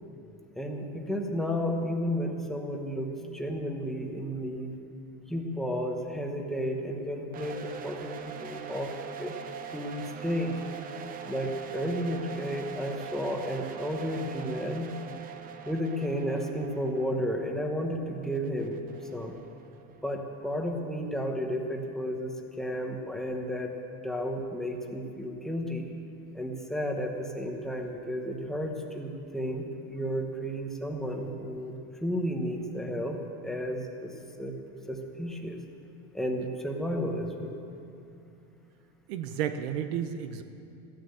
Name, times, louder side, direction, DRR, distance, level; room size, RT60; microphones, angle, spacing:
voice 1, 0.6-4.7 5.3-9.4 9.7-10.6 11.3-14.9 15.7-18.8 19.1-19.3 20.0-23.7 24.0-25.9 26.3-31.7 32.0-34.6 34.9-35.6 36.1-37.6, equal, ahead, 1 dB, 1.0 m, -32 dB
sound 1, 7.3-20.2, right 8 dB, 25° right, 0.6 m, -43 dB
voice 2, 39.1-40.4, right 9 dB, 90° right, 9 dB, 1.0 m, -32 dB
14.5 x 10.0 x 7.8 m, 2.7 s
cardioid pair, 170°, 32 cm